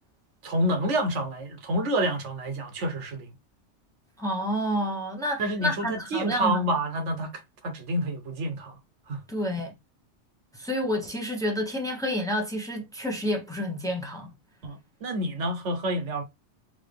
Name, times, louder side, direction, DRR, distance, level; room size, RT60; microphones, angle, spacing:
voice 1, 0.4-3.3 5.4-8.7 9.1-9.2 14.6-16.2, right 1 dB, 75° right, 1.2 m, -28 dB
voice 2, 4.2-6.7 9.3-9.7 10.5-14.3, equal, 5° left, 1.0 m, -29 dB
3.7 x 3.0 x 3.4 m
omnidirectional pair, 1.2 m